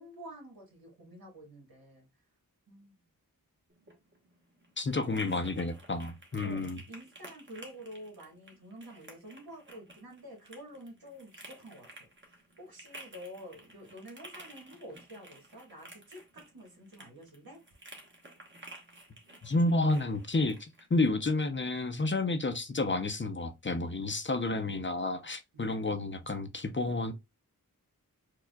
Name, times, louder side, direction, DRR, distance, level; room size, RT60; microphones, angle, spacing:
voice 1, 0.0-2.1 2.7-3.0 5.2-5.4 6.4-11.9 12.2-17.6 25.5-25.7, equal, 80° right, 1.6 m, -49 dB
sound 1, 3.7-20.9, right 1 dB, 35° right, 1.2 m, -53 dB
voice 2, 4.8-6.8 19.4-20.6 20.9-27.1, left 2 dB, 35° left, 0.6 m, -30 dB
4.6 x 2.4 x 2.3 m
wide cardioid pair, 50°, 35 cm